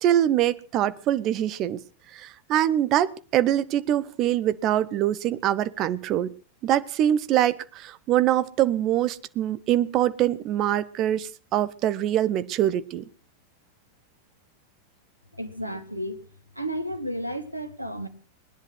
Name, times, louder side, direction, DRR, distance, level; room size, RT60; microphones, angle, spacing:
voice 1, 0.0-1.8 2.1-6.3 6.6-13.0, right 12 dB, 35° right, 1.0 m, -24 dB
voice 2, 15.3-16.2 16.5-18.1, equal, 90° right, 2.0 m, -32 dB
20.0 x 10.5 x 6.2 m
figure-of-eight pair, 90°, 0 cm